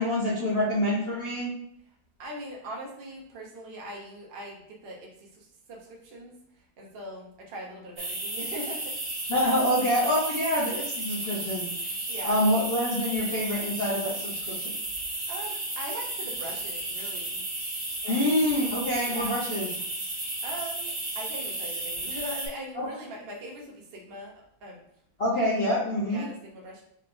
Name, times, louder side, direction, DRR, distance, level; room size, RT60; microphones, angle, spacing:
voice 1, 0.0-1.5 9.3-11.6 12.2-14.6 18.0-19.7 22.7-22.9 25.2-26.2, left 1 dB, 70° left, -7 dB, 0.5 m, -26 dB
voice 2, 2.2-6.3 6.8-8.9 12.1-12.4 15.1-17.4 18.0-18.3 19.0-19.4 20.1-24.3 24.6-24.8 26.1-26.8, right 1 dB, 70° right, -1 dB, 0.5 m, -41 dB
sound 1, 8.0-22.5, right 2 dB, 40° right, 0.9 m, -33 dB
4.1 x 3.1 x 2.6 m, 0.71 s
omnidirectional pair, 2.2 m